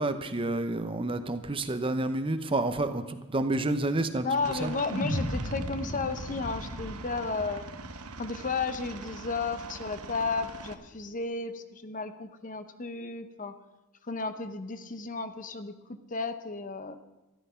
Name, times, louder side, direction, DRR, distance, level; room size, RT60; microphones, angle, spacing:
voice 1, 0.0-4.2 4.6-4.7, right 2 dB, 25° right, 9 dB, 0.7 m, -29 dB
voice 2, 4.2-7.6 8.2-13.5 14.0-17.0, left 4 dB, 35° left, 10 dB, 0.8 m, -33 dB
Aircraft, 4.4-10.7, right 3 dB, 90° right, 1.0 m, -43 dB
sound 1, 4.9-9.2, equal, 85° left, 2.3 m, -36 dB
13.5 x 11.5 x 5.7 m, 1.1 s
head